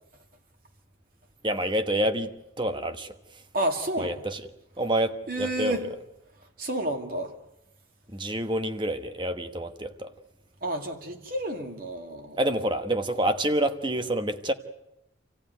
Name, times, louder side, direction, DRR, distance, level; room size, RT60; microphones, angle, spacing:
voice 1, 1.4-2.3 2.6-3.2 4.0-4.4 4.8-5.8 8.1-10.1 12.4-14.5, right 1 dB, 25° right, 1.2 m, -27 dB
voice 2, 3.5-4.2 5.3-5.9 6.6-7.3 10.6-12.4, right 1 dB, 50° right, 2.4 m, -30 dB
27.0 x 15.5 x 9.3 m
head